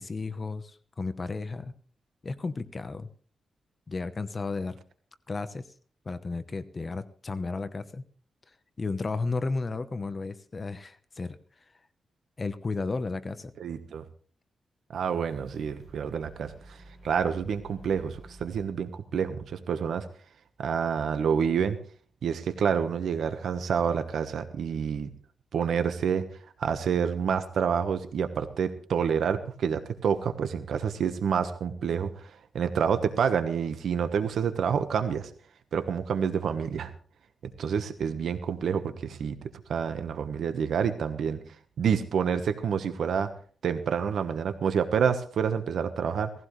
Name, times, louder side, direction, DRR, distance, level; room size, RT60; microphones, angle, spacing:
voice 1, 0.0-1.7 2.2-3.1 3.9-4.8 5.3-5.6 6.0-8.0 8.8-11.4 12.4-13.5, left 3 dB, 30° left, 11 dB, 0.9 m, -33 dB
voice 2, 13.6-14.0 14.9-16.5 17.0-20.1 20.6-21.8 22.2-25.1 25.5-26.2 26.6-35.3 35.7-36.9 37.6-41.4 41.8-43.3 43.6-46.3, right 7 dB, 80° right, 9 dB, 1.2 m, -28 dB
sound 1, 15.1-18.8, right 1 dB, 10° left, 6.9 m, -52 dB
18.0 x 15.5 x 3.2 m, 0.43 s
wide cardioid pair, 135°, 0 cm